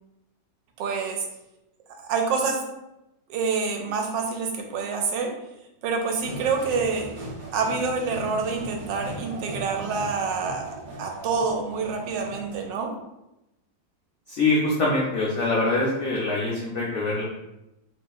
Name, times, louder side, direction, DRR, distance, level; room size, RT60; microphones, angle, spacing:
voice 1, 0.8-1.2 1.9-2.6 3.3-5.3 5.8-7.1 7.5-12.9, right 4 dB, 85° right, 3 dB, 1.2 m, -27 dB
sound 1, 6.2-12.7, right 2 dB, 60° right, 1.3 m, -38 dB
voice 2, 14.3-17.2, left 2 dB, 80° left, -5 dB, 0.6 m, -24 dB
3.2 x 2.8 x 2.3 m, 0.91 s
omnidirectional pair, 1.9 m